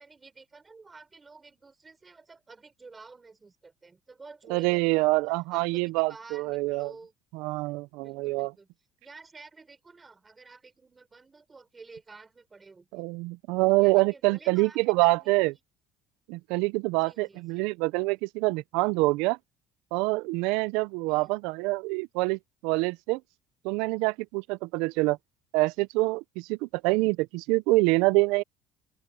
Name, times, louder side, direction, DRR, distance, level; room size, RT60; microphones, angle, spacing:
voice 1, 0.0-5.2 5.5-7.1 8.0-8.7 9.0-13.1 13.8-14.8 15.2-15.3 16.9-17.6 21.0-21.3 24.9-25.2, right 4 dB, 15° right, 5.6 m, -51 dB
voice 2, 4.5-6.9 7.3-8.5 12.9-15.5 16.3-19.4 19.9-23.2 23.6-25.2 25.5-28.4, right 23 dB, 80° right, 0.4 m, -26 dB
open air
cardioid pair, 180°, 0 cm